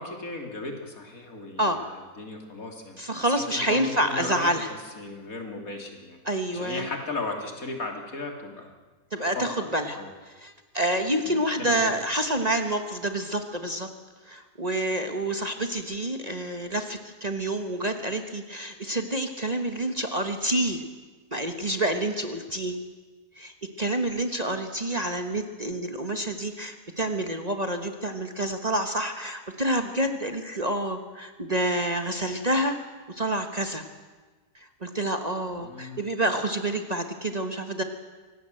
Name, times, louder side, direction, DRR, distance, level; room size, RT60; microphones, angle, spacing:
voice 1, 0.0-3.0 3.5-4.6 5.0-6.2 6.5-8.7 9.4-9.7 10.0-10.1 11.3-11.9 35.6-36.0, left 3 dB, 65° left, 2 dB, 3.3 m, -36 dB
voice 2, 3.0-4.7 6.2-6.9 9.1-10.0 10.4-13.9 14.2-20.8 21.3-22.8 23.4-32.8 33.1-33.8 34.5-37.8, right 1 dB, 30° right, 6 dB, 1.4 m, -28 dB
24.5 x 18.5 x 7.8 m, 1.3 s
omnidirectional pair, 1.6 m